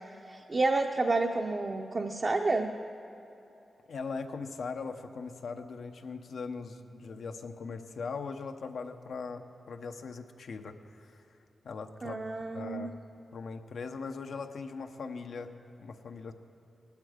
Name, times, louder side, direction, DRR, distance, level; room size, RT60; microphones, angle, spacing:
voice 1, 0.0-2.7 12.0-12.9, right 3 dB, 40° right, 2 dB, 0.6 m, -30 dB
voice 2, 3.9-11.2 11.6-12.2 12.5-12.9 13.3-15.5 15.8-16.3, left 4 dB, 80° left, 6 dB, 0.8 m, -40 dB
18.5 x 12.0 x 5.0 m, 3.0 s
wide cardioid pair, 90°, 0 cm